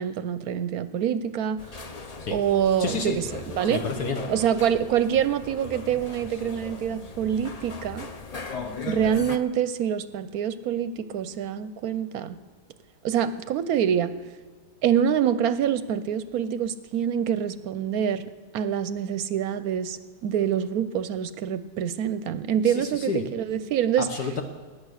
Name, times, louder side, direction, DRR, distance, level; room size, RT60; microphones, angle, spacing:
voice 1, 0.0-1.6 2.3-3.8 4.3-8.1 8.9-12.4 13.0-14.1 14.8-24.1, right 9 dB, 70° right, 13 dB, 1.0 m, -26 dB
sound 1, 1.6-9.4, left 4 dB, 40° left, 0.5 m, -38 dB
voice 2, 2.8-3.2 3.7-4.2 22.7-23.3 24.0-24.4, left 4 dB, 70° left, 4 dB, 1.6 m, -29 dB
19.5 x 9.3 x 6.5 m, 1.4 s
omnidirectional pair, 1.8 m